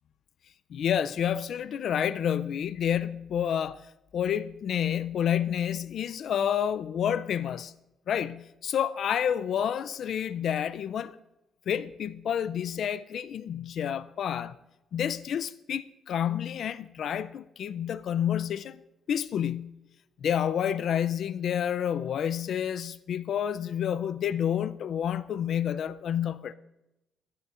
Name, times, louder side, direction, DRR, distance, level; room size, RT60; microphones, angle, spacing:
voice 1, 0.7-3.8 4.1-7.7 8.1-11.2 11.7-14.6 14.9-18.8 19.1-19.8 20.2-26.5, left 9 dB, 55° left, 0.4 m, -29 dB
15.0 x 13.5 x 2.5 m
cardioid pair, 155°, 0 cm